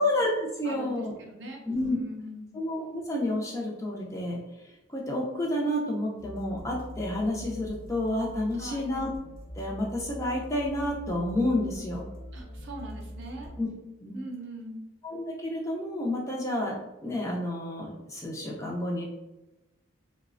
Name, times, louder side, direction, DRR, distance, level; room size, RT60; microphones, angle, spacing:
voice 1, 0.0-1.1 1.7-2.0 2.5-9.1 9.6-12.1 13.6-13.7 14.0-14.2 15.0-19.0, left 1 dB, 15° left, -2 dB, 0.3 m, -30 dB
voice 2, 0.6-2.6 8.6-9.0 12.3-13.5 14.1-14.8, right 1 dB, 60° right, 0 dB, 0.6 m, -41 dB
sound 1, 6.2-13.6, equal, 70° left, 0.5 m, -43 dB
3.1 x 2.0 x 2.4 m, 1.0 s
head